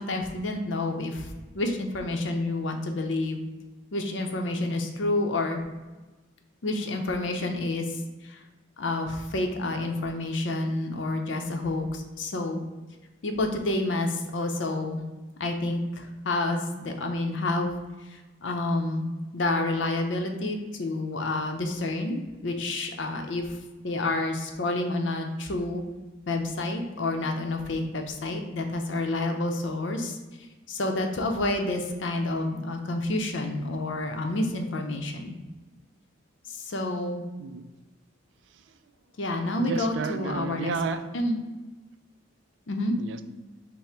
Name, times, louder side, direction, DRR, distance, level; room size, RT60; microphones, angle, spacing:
voice 1, 0.0-3.4 3.9-5.6 6.6-8.4 8.8-12.6 13.2-15.0 15.4-17.8 18.4-19.1 19.3-23.4 23.8-25.8 26.3-30.2 30.7-35.4 36.5-37.2 39.2-40.7 41.1-41.4 42.7-43.0, left 2 dB, 70° left, 4 dB, 0.6 m, -29 dB
voice 2, 39.6-41.1 43.0-43.2, right 5 dB, 65° right, 10 dB, 0.3 m, -32 dB
5.7 x 2.1 x 4.3 m, 1.2 s
head